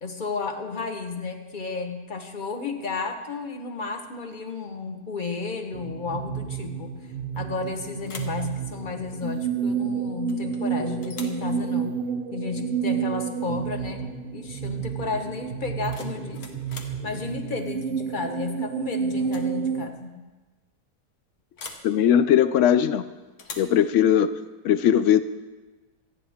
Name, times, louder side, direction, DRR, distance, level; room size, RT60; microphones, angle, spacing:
voice 1, 0.0-7.0 7.4-12.0 12.3-14.0 14.3-16.4 17.0-20.2, left 4 dB, 30° left, 5 dB, 1.2 m, -32 dB
sound 1, 5.7-19.9, right 7 dB, 60° right, 0.5 m, -30 dB
sound 2, 7.3-7.7 8.0-8.4 10.3-10.6 11.0-11.4 13.3-13.5 13.8-14.2 15.6-17.0 18.5-18.8 19.2-19.5 19.8-19.9 21.6-21.9 23.4-23.8, left 4 dB, 60° left, 1.8 m, -42 dB
voice 2, 21.8-23.0 23.6-24.3 24.6-25.2, left 9 dB, 90° left, 12 dB, 0.6 m, -19 dB
26.5 x 9.2 x 3.6 m, 1.2 s
omnidirectional pair, 1.8 m